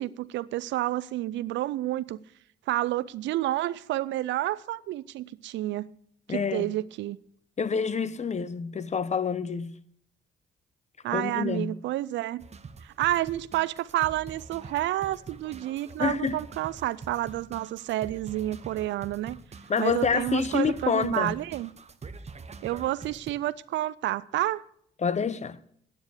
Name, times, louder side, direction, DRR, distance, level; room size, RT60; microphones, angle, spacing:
voice 1, 0.0-2.2 2.7-5.9 6.3-7.2 11.0-12.4 12.8-19.4 19.8-21.7 22.6-24.6, right 15 dB, 80° right, 0.4 m, -29 dB
voice 2, 6.3-6.7 7.6-9.7 11.1-11.7 16.0-16.4 19.7-21.3 25.0-25.6, left 6 dB, 40° left, 0.8 m, -27 dB
sound 1, 12.4-23.3, right 4 dB, 35° right, 0.9 m, -45 dB
9.5 x 8.9 x 6.4 m
supercardioid pair, 60°, 19 cm